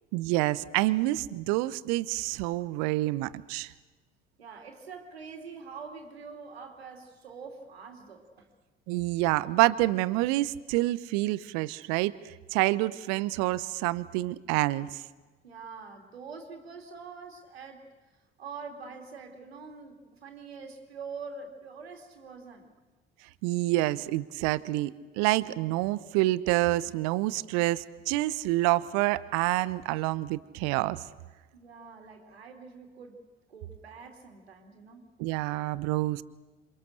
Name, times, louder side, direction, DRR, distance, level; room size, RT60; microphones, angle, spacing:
voice 1, 0.1-3.7 8.9-12.2 12.5-14.9 23.4-31.0 35.2-36.2, right 18 dB, 60° right, 18 dB, 1.0 m, -27 dB
voice 2, 4.4-8.5 15.4-17.9 18.4-22.7 31.5-33.2 33.5-35.1, right 5 dB, 80° right, 4 dB, 2.8 m, -45 dB
28.0 x 26.5 x 6.6 m, 1.3 s
figure-of-eight pair, 55°, 30 cm